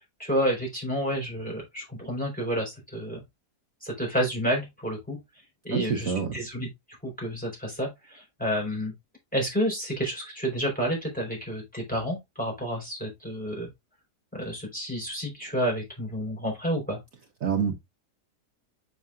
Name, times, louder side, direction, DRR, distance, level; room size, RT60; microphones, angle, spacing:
voice 1, 0.2-3.2 3.8-5.2 5.6-6.7 7.0-8.9 9.3-13.7 14.3-17.0, equal, 5° left, 4.3 m, -30 dB
voice 2, 5.7-6.4 17.4-17.8, right 6 dB, 60° right, 1.3 m, -26 dB
7.1 x 6.5 x 2.5 m
omnidirectional pair, 1.7 m